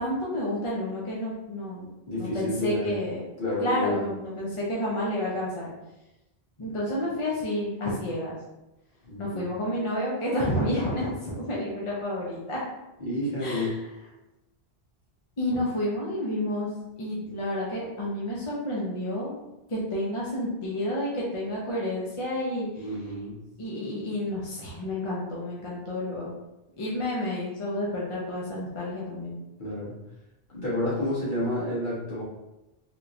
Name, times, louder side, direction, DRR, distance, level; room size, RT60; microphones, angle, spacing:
voice 1, 0.0-3.2 3.6-5.7 6.6-8.3 9.2-12.6 13.4-13.8 15.4-16.7 17.0-19.3 19.7-22.8 23.6-26.3 26.8-29.4, left 1 dB, 35° left, -6 dB, 0.7 m, -30 dB
voice 2, 2.1-3.0 3.4-4.1 9.0-9.4 13.0-13.7 22.8-23.3 29.6-29.9 30.5-32.2, left 1 dB, 50° left, -8 dB, 1.4 m, -30 dB
3.5 x 2.9 x 2.5 m, 0.97 s
omnidirectional pair, 1.0 m